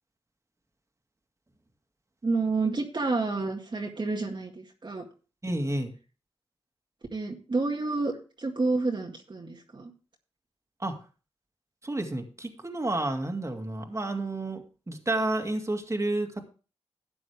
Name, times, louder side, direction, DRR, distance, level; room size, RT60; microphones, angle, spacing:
voice 1, 2.2-5.1 7.1-8.1 8.4-9.9, right 3 dB, 45° right, 1 dB, 1.9 m, -29 dB
voice 2, 5.4-5.9 10.8-11.0 11.8-16.4, right 2 dB, 25° right, 5 dB, 2.2 m, -30 dB
12.5 x 8.5 x 3.4 m, 0.36 s
cardioid pair, 55°, 11 cm